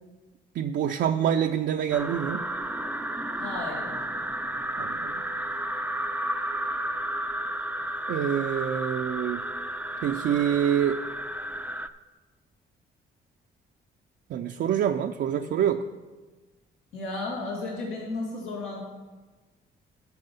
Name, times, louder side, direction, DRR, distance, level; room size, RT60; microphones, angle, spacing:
voice 1, 0.5-2.5 4.8-5.2 8.1-9.4 10.0-11.0 14.3-15.8, right 9 dB, 65° right, 4 dB, 0.5 m, -26 dB
sound 1, 1.9-11.9, right 1 dB, 10° right, 0.5 m, -32 dB
voice 2, 3.4-3.9 16.9-18.8, left 3 dB, 90° left, -3 dB, 2.6 m, -33 dB
12.0 x 6.2 x 5.5 m, 1.3 s
cardioid pair, 90°, 20 cm